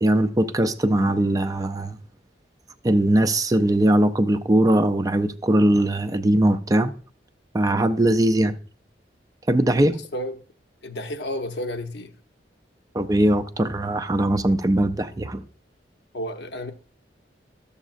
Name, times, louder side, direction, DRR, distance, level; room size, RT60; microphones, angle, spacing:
voice 1, 0.0-2.0 2.8-6.9 7.5-8.5 9.5-9.9 12.9-15.4, right 1 dB, 20° right, 0.4 m, -20 dB
voice 2, 9.9-10.4 10.8-12.1 16.1-16.7, left 1 dB, 70° left, 0.8 m, -31 dB
12.5 x 7.1 x 2.5 m
head